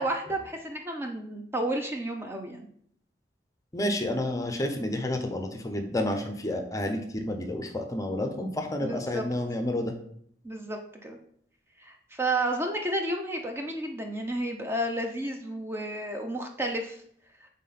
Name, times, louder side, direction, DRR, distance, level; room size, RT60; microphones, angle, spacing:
voice 1, 0.0-2.6 8.8-9.2 10.4-11.2 11.8-17.0, right 1 dB, 15° right, 3 dB, 0.6 m, -31 dB
voice 2, 3.7-9.9, left 1 dB, 20° left, 5 dB, 0.7 m, -30 dB
8.1 x 3.7 x 4.2 m, 0.66 s
head